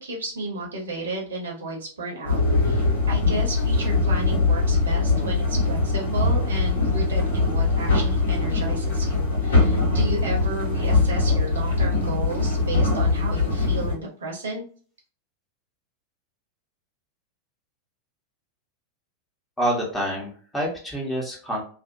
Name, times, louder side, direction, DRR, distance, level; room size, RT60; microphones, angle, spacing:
voice 1, 0.0-14.6, right 2 dB, 65° right, -1 dB, 0.9 m, -33 dB
sound 1, 2.2-13.9, left 3 dB, 70° left, 1.3 m, -22 dB
voice 2, 19.6-21.6, right 1 dB, 5° left, -3 dB, 1.1 m, -27 dB
2.6 x 2.4 x 2.6 m, 0.42 s
figure-of-eight pair, 90°, 0 cm